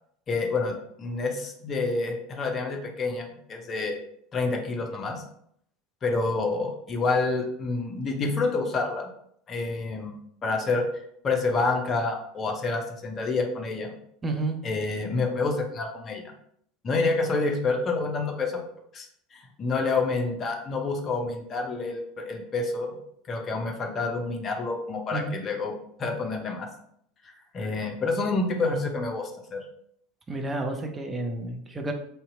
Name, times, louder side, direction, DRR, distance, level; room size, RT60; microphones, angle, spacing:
voice 1, 0.3-4.0 4.3-5.2 6.0-9.1 9.5-10.1 10.4-10.8 11.2-13.9 14.6-16.2 16.8-18.5 18.9-19.1 19.6-22.9 23.3-25.7 26.0-26.7 27.5-29.6, left 3 dB, 30° left, 3 dB, 0.6 m, -28 dB
voice 2, 14.2-14.6 25.1-25.4 30.3-31.9, right 2 dB, 20° right, 4 dB, 0.5 m, -30 dB
2.7 x 2.2 x 3.7 m, 0.69 s
figure-of-eight pair, 75°, 0 cm